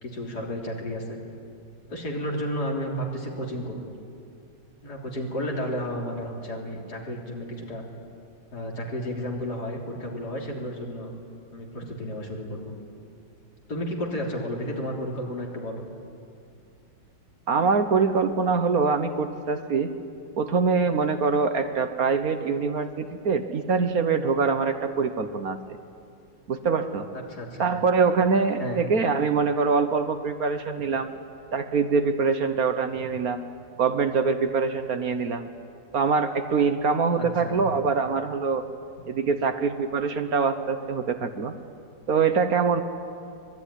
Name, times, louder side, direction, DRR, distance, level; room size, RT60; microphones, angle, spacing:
voice 1, 0.0-1.2 1.9-3.9 4.8-7.8 8.5-11.1 11.5-12.8 13.7-15.8 27.3-27.7 28.6-28.8 37.2-37.6, equal, 60° left, -1 dB, 4.0 m, -32 dB
voice 2, 17.5-19.9 20.4-25.6 26.5-27.1 27.6-31.1 31.5-33.4 33.8-35.5 35.9-38.6 39.1-41.5 42.1-42.8, right 5 dB, 55° right, 8 dB, 1.5 m, -24 dB
24.5 x 20.0 x 10.0 m, 2.4 s
omnidirectional pair, 1.9 m